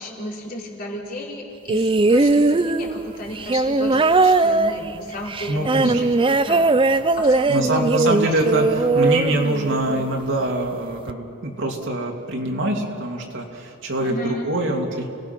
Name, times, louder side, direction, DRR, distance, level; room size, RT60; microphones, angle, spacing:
voice 1, 0.0-6.7 7.2-8.2 14.0-14.5, left 1 dB, 45° left, -2 dB, 3.7 m, -33 dB
sound 1, 1.7-10.1 11.1-11.2, right 3 dB, 25° right, 0.5 m, -19 dB
voice 2, 5.5-5.9 7.5-15.1, right 1 dB, 60° right, 1 dB, 2.8 m, -24 dB
30.0 x 18.5 x 6.0 m, 2.6 s
head